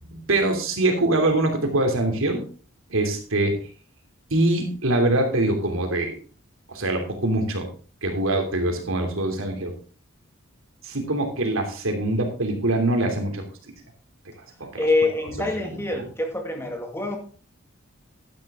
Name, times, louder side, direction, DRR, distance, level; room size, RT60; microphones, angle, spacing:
voice 1, 0.0-2.4 2.9-3.6 4.3-6.2 6.7-7.6 8.0-9.7 10.8-13.4 14.6-14.8 15.4-15.7, right 2 dB, 90° right, 4 dB, 3.0 m, -23 dB
voice 2, 14.8-17.2, left 2 dB, 10° left, 3 dB, 2.1 m, -25 dB
12.0 x 10.0 x 3.7 m, 0.39 s
head